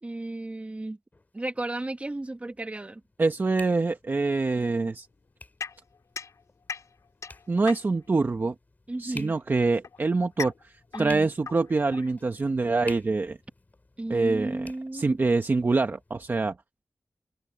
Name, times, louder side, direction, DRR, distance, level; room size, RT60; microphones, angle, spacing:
voice 1, 0.0-1.0 1.3-3.0 8.9-9.3 10.9-11.3 14.0-15.2, right 2 dB, 25° right, 1.7 m, -34 dB
sound 1, 1.1-16.3, left 2 dB, 30° left, 5.8 m, -52 dB
voice 2, 3.2-5.1 7.5-8.5 9.0-10.7 11.0-13.4 14.1-16.5, right 3 dB, 40° right, 1.0 m, -25 dB
sound 2, 5.6-8.2 9.2-12.6, left 6 dB, 90° left, 5.2 m, -40 dB
wide cardioid pair, 110°, 5 cm